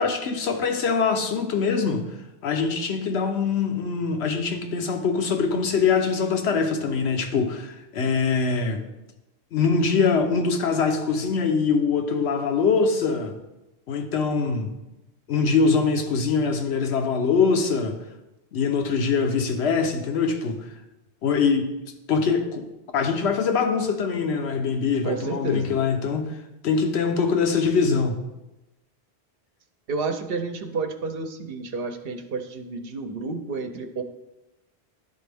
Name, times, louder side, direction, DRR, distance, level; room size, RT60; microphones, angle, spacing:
voice 1, 0.0-2.1 2.4-8.8 9.5-13.4 13.9-14.7 15.3-18.0 18.5-20.6 21.2-21.7 22.1-22.7 22.9-26.3 26.6-28.2, left 5 dB, 85° left, 6 dB, 1.0 m, -23 dB
voice 2, 25.0-25.7 29.9-34.0, right 4 dB, 70° right, 6 dB, 0.8 m, -30 dB
11.0 x 4.1 x 3.4 m, 0.96 s
omnidirectional pair, 1.1 m